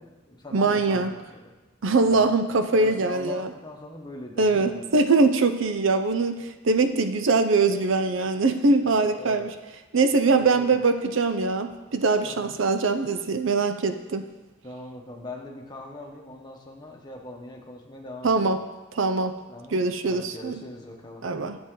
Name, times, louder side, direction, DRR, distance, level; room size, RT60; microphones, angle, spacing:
voice 1, 0.0-1.5 2.1-2.3 2.7-4.9 8.8-9.5 10.3-10.7 12.2-12.6 14.6-18.5 19.5-21.3, left 1 dB, 20° left, 0 dB, 1.1 m, -41 dB
voice 2, 0.5-1.1 1.8-3.5 4.4-9.5 9.9-14.3 18.2-18.6 18.9-19.4 19.7-20.5 21.2-21.6, right 3 dB, 70° right, 9 dB, 0.6 m, -22 dB
12.5 x 7.7 x 3.8 m, 1.2 s
head